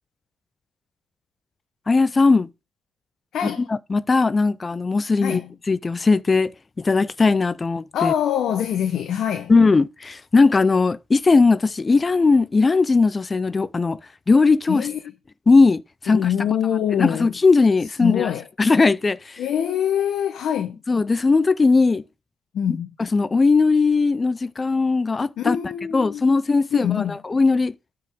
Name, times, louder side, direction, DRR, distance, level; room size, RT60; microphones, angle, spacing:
voice 1, 1.9-2.5 3.4-5.4 5.7-8.1 9.5-14.0 14.3-14.9 15.5-16.6 17.0-18.3 18.6-19.4 20.9-22.0 23.1-25.6 25.9-27.7, left 4 dB, 30° left, 0.5 m, -19 dB
voice 2, 3.3-3.6 5.2-5.5 7.9-9.5 14.7-15.0 16.1-17.3 18.0-18.4 19.4-20.8 22.5-22.9 25.4-26.2 26.7-27.2, left 9 dB, 70° left, 0.9 m, -24 dB
13.0 x 4.9 x 3.5 m
cardioid pair, 90°, 0 cm